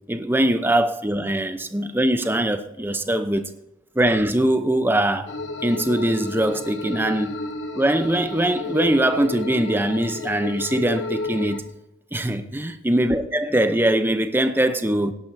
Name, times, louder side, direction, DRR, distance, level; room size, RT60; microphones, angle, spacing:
voice 1, 0.1-3.5 4.0-5.3 5.6-7.3 7.7-11.6 12.1-15.1, right 1 dB, 10° right, 0.7 m, -22 dB
sound 1, 5.3-11.6, left 3 dB, 70° left, 1.2 m, -32 dB
17.5 x 11.0 x 2.7 m
head